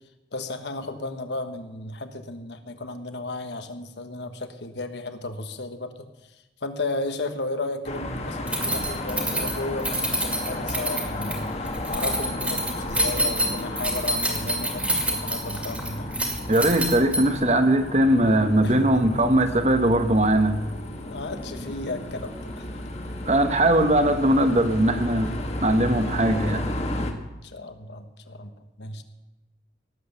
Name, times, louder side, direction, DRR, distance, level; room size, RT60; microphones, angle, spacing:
voice 1, 0.3-6.0 6.6-11.5 11.9-16.1 18.6-19.2 21.1-22.7 25.0-25.1 27.2-28.5 28.8-29.0, left 2 dB, 75° left, 8 dB, 1.4 m, -34 dB
sound 1, 7.8-27.1, left 1 dB, 35° left, 1.5 m, -33 dB
Keys jangling, 8.5-17.5, right 1 dB, 10° right, 2.1 m, -27 dB
voice 2, 16.5-20.6 23.3-25.3 25.6-26.7, right 1 dB, 40° right, 8 dB, 1.1 m, -20 dB
18.0 x 8.1 x 7.0 m, 1.0 s
head